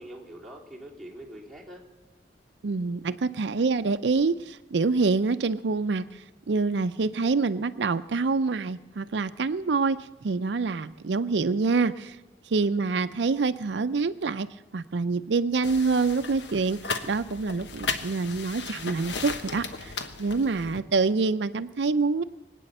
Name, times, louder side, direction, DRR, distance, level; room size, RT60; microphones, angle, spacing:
voice 1, 0.0-1.9 12.6-13.0, right 1 dB, ahead, -2 dB, 3.4 m, -45 dB
voice 2, 2.6-12.2 12.5-14.5 14.7-16.8 17.1-19.9 20.2-22.2, right 4 dB, 80° right, 12 dB, 0.5 m, -26 dB
sound 1, 15.6-20.8, left 5 dB, 85° left, 1.2 m, -36 dB
23.0 x 9.2 x 6.6 m, 1.1 s
head